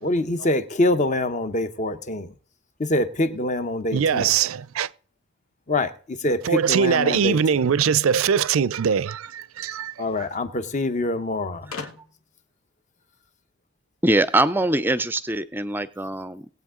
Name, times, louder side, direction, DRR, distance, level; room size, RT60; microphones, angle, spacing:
voice 1, 0.0-2.3 2.8-4.3 5.7-7.6 10.0-11.7, left 1 dB, 35° left, 0.8 m, -25 dB
voice 2, 3.9-4.9 6.4-9.9, right 7 dB, 80° right, 0.5 m, -22 dB
sound 1, 7.8-9.2 10.3-10.4 10.6-10.7 11.7-12.4, left 4 dB, 90° left, 1.3 m, -40 dB
voice 3, 14.0-16.5, right 1 dB, 10° right, 0.4 m, -22 dB
19.5 x 8.0 x 3.7 m
head